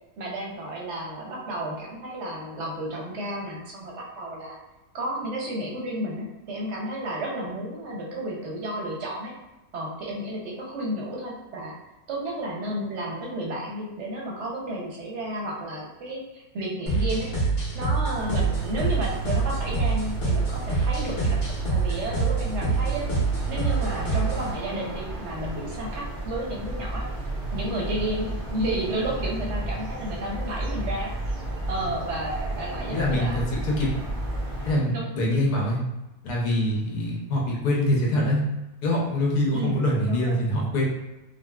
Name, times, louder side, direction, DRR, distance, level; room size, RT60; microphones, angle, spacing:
voice 1, 0.2-4.5 4.9-9.3 9.7-11.7 12.1-17.3 17.7-21.4 21.7-23.1 23.5-27.0 27.5-31.1 31.7-33.4 34.9-35.1 39.5-40.4, right 1 dB, 60° right, -3 dB, 0.8 m, -32 dB
sound 1, 16.9-24.5, right 3 dB, 50° left, 1.4 m, -26 dB
sound 2, 18.2-34.7, right 1 dB, 75° right, 0.4 m, -33 dB
voice 2, 32.9-33.9 34.7-35.8 36.2-38.4 38.8-40.8, left 1 dB, 75° left, -2 dB, 1.3 m, -24 dB
3.9 x 2.1 x 2.2 m, 1.0 s
omnidirectional pair, 1.7 m